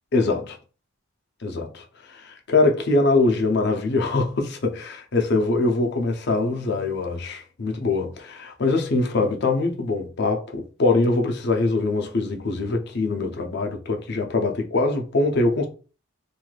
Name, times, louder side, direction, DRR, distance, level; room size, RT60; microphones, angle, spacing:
voice 1, 0.1-0.6 1.4-15.7, left 3 dB, 50° left, 0.5 m, -23 dB
3.1 x 2.6 x 2.3 m
head